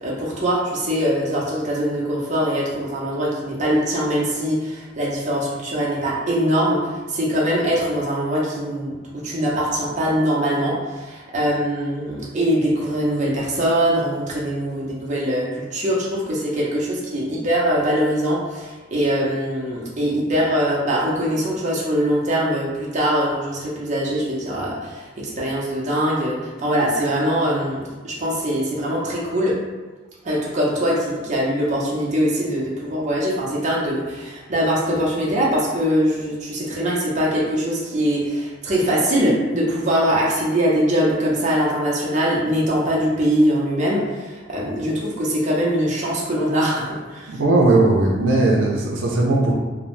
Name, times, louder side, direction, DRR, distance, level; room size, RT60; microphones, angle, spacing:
voice 1, 0.0-29.6 30.2-47.3, equal, 40° right, -5 dB, 0.6 m, -22 dB
voice 2, 47.3-49.5, right 2 dB, 85° right, -2 dB, 0.4 m, -18 dB
2.6 x 2.0 x 3.0 m, 1.2 s
head